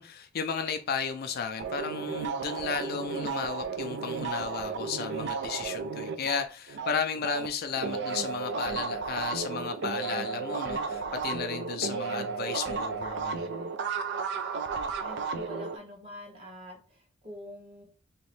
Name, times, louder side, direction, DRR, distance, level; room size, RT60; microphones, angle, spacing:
voice 1, 0.0-13.5, left 6 dB, 50° left, 0.4 m, -34 dB
sound 1, 1.6-7.5 7.8-15.8, right 5 dB, 55° right, 0.4 m, -33 dB
voice 2, 15.0-17.8, left 1 dB, 30° right, 1.3 m, -45 dB
3.0 x 2.9 x 3.1 m
head